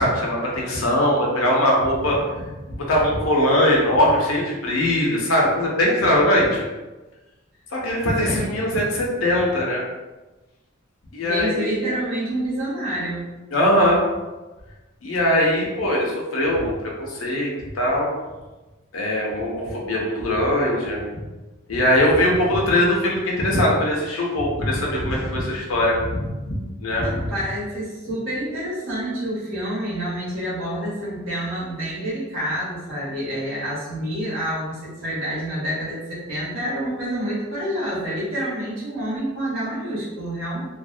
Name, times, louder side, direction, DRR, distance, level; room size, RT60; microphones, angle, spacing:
voice 1, 0.0-6.6 7.7-9.8 11.1-12.0 13.5-14.0 15.0-18.1 18.9-21.0 21.7-27.3, left 1 dB, 90° left, -2 dB, 0.7 m, -21 dB
voice 2, 8.1-8.4 11.2-13.3 27.0-40.6, right 1 dB, 75° right, -8 dB, 1.1 m, -28 dB
2.5 x 2.1 x 2.5 m, 1.1 s
head